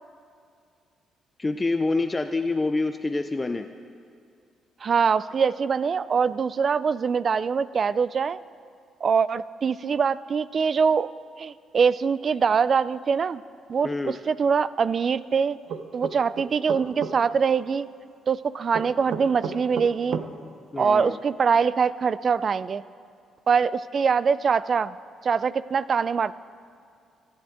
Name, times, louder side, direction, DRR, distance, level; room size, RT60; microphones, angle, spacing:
voice 1, 1.4-3.7 13.8-14.2 20.7-21.2, left 3 dB, 20° left, 8 dB, 0.5 m, -26 dB
voice 2, 4.8-8.4 9.0-11.1 11.4-13.4 13.7-15.6 15.9-17.9 18.3-20.2 20.8-22.8 23.5-24.9 25.2-26.3, right 6 dB, 45° right, 18 dB, 0.3 m, -23 dB
sound 1, 15.7-17.1 18.7-20.3, right 6 dB, 70° right, 0.8 m, -32 dB
25.5 x 10.0 x 3.6 m, 2.3 s
cardioid pair, 90°, 0 cm